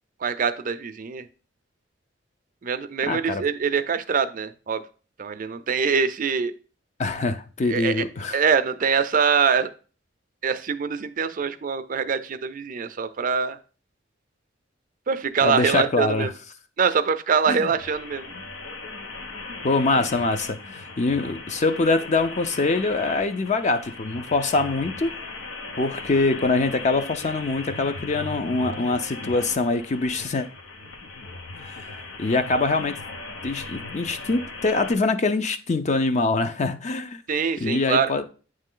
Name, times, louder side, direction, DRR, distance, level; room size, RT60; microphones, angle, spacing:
voice 1, 0.2-1.3 2.6-4.8 5.2-6.5 7.6-8.0 8.3-9.7 10.4-13.6 15.1-16.3 16.8-18.3 37.3-38.1, right 6 dB, 45° right, 0.4 m, -24 dB
voice 2, 3.1-3.4 7.0-8.4 15.4-16.3 17.5-17.7 19.6-25.1 25.8-30.5 31.6-31.8 32.2-33.0 33.4-37.2 37.6-38.2, left 3 dB, 40° left, 0.5 m, -24 dB
sound 1, 17.8-34.9, left 3 dB, 85° left, 0.9 m, -38 dB
9.0 x 3.2 x 3.7 m
head